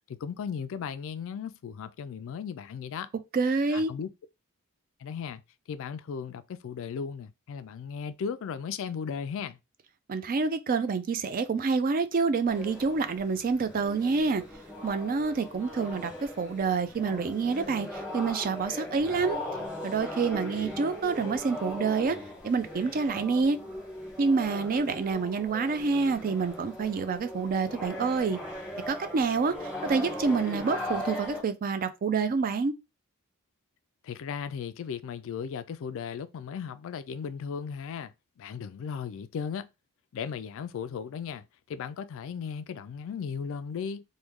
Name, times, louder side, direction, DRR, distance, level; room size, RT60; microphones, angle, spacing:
voice 1, 0.1-3.1 3.7-4.1 5.0-5.4 5.7-9.6 34.0-39.7 40.1-44.0, left 6 dB, 65° left, 0.3 m, -36 dB
voice 2, 3.3-3.9 10.1-14.4 14.8-19.4 19.8-22.2 22.4-23.6 24.2-28.4 28.9-32.7, right 4 dB, 40° right, 0.4 m, -27 dB
sound 1, 12.5-31.4, left 1 dB, 5° right, 0.9 m, -39 dB
3.0 x 2.2 x 3.5 m
head